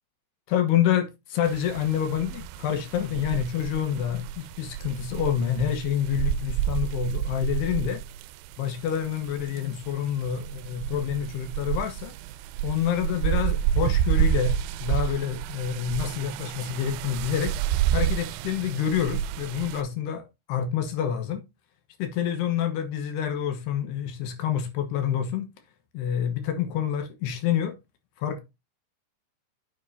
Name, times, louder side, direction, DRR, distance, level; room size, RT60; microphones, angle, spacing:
voice 1, 0.5-8.0 8.6-12.1 12.6-14.5 14.8-17.6 17.9-21.4 22.0-25.5 25.9-27.7 28.2-28.4, left 9 dB, 70° left, 3.0 m, -27 dB
sound 1, 1.5-19.8, right 10 dB, 85° right, 2.9 m, -30 dB
9.2 x 7.5 x 2.7 m
omnidirectional pair, 5.6 m